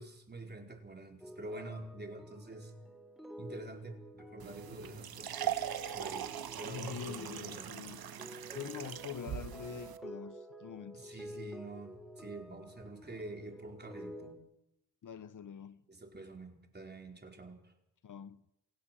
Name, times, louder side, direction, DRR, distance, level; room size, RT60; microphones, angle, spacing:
voice 1, 0.0-2.7 3.4-5.7 5.9-7.7 10.9-14.4 15.9-17.7, right 2 dB, 25° right, 4.7 m, -47 dB
sound 1, 1.2-14.3, equal, ahead, 5.8 m, -50 dB
sound 2, 4.4-10.0, right 10 dB, 75° right, 1.3 m, -41 dB
voice 2, 6.6-8.0 8.5-11.3 15.0-15.8 18.0-18.4, left 8 dB, 55° left, 1.0 m, -45 dB
28.5 x 16.5 x 7.6 m
cardioid pair, 90°, 37 cm